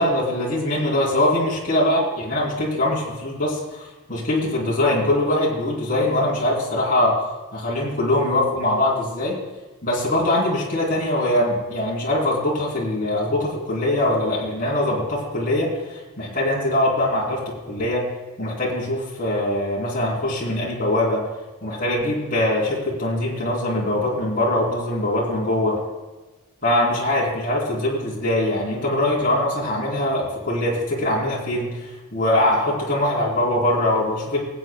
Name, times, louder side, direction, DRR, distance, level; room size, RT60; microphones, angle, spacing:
voice 1, 0.0-7.2 7.5-9.4 9.8-18.1 18.4-21.3 21.6-25.8 26.6-34.4, left 1 dB, 40° left, -5 dB, 3.2 m, -22 dB
23.0 x 8.4 x 2.2 m, 1.2 s
head